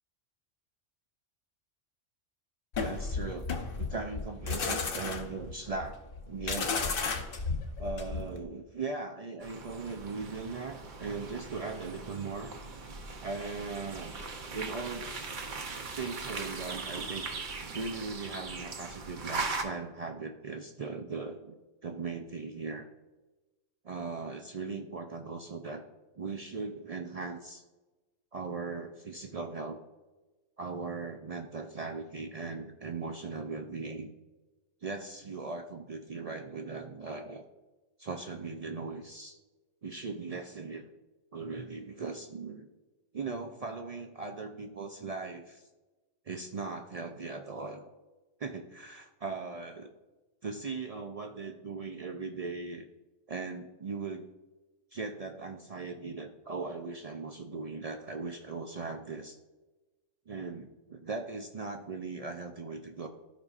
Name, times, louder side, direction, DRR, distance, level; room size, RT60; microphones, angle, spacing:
sound 1, 2.7-8.4, left 4 dB, 55° left, 0.9 m, -33 dB
voice 1, 2.8-3.5 3.8-6.0 6.3-6.8 7.8-12.5 13.2-14.1 14.5-15.3 16.0-17.3 17.7-21.6 21.8-22.9 23.8-25.9 26.2-27.6 28.3-29.8 30.6-34.1 34.8-37.4 38.0-39.4 39.8-40.8 41.3-42.7 43.1-45.7 46.3-47.9 48.4-49.9 50.4-52.9 53.3-54.3 54.9-59.4 60.3-63.1, right 4 dB, 60° right, 4 dB, 0.3 m, -39 dB
sound 2, 9.4-19.6, right 4 dB, 45° right, 0.8 m, -40 dB
13.5 x 5.3 x 2.4 m, 1.1 s
omnidirectional pair, 1.3 m